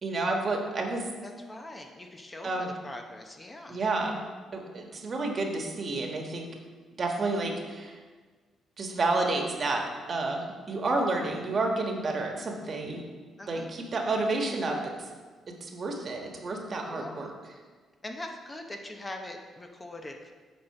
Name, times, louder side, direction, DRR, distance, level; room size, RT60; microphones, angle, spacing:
voice 1, 0.0-1.1 2.4-2.7 3.7-4.2 4.5-6.5 7.0-7.9 8.8-13.0 13.5-15.1 15.6-17.3, right 2 dB, 45° right, 2 dB, 1.3 m, -30 dB
voice 2, 1.2-3.8 7.3-7.5 13.4-13.7 16.9-17.3 18.0-20.4, left 1 dB, 20° left, 3 dB, 0.8 m, -42 dB
8.3 x 4.2 x 5.9 m, 1.4 s
cardioid pair, 90°, 0 cm